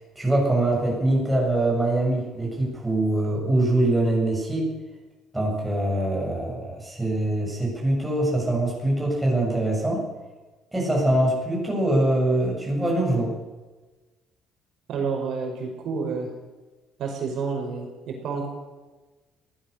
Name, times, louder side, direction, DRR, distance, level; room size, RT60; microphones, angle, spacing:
voice 1, 0.2-4.7 5.3-10.0 10.7-13.3, right 1 dB, 5° right, -3 dB, 8.0 m, -23 dB
voice 2, 14.9-16.3 17.0-18.5, right 5 dB, 60° right, 2 dB, 5.5 m, -29 dB
22.0 x 17.5 x 6.8 m, 1.2 s
cardioid pair, 150°, 0 cm